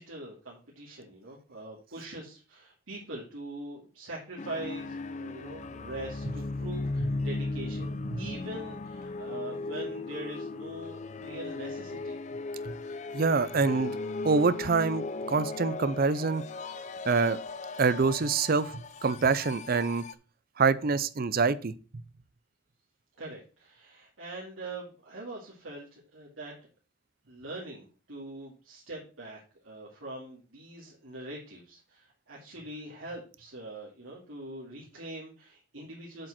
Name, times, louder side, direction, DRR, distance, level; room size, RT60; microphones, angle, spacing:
voice 1, 0.0-12.2 23.2-26.6 27.3-36.3, right 1 dB, 80° right, -4 dB, 2.3 m, -43 dB
sound 1, 4.4-20.1, left 3 dB, 35° left, 0.5 m, -37 dB
voice 2, 13.1-14.0 14.2-16.4 17.1-17.4 17.8-20.0 20.6-21.7, right 4 dB, 50° right, 16 dB, 0.5 m, -26 dB
7.6 x 5.0 x 5.8 m, 0.35 s
head